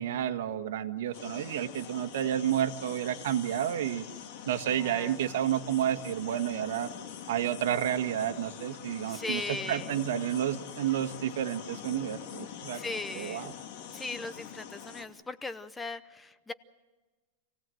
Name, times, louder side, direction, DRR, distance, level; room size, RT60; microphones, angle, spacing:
voice 1, 0.0-4.0 4.4-6.9 7.3-12.8 13.1-13.5, right 10 dB, 75° right, 9 dB, 1.6 m, -30 dB
sound 1, 1.1-15.0, left 9 dB, 50° left, 2.5 m, -44 dB
voice 2, 4.7-5.4 9.1-9.9 12.7-13.5 13.9-16.5, left 3 dB, 10° left, 13 dB, 0.7 m, -38 dB
27.0 x 17.0 x 7.9 m, 1.2 s
supercardioid pair, 150°, 0 cm